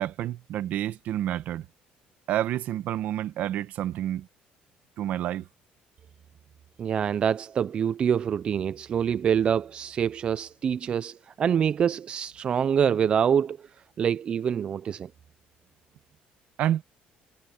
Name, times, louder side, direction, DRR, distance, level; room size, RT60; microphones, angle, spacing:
voice 1, 0.0-1.7 2.3-4.3 5.0-5.5 16.6-16.8, right 12 dB, 60° right, 1.2 m, -29 dB
voice 2, 6.8-13.6 14.0-15.1, right 8 dB, 35° right, 0.3 m, -25 dB
cardioid pair, 150°, 3 cm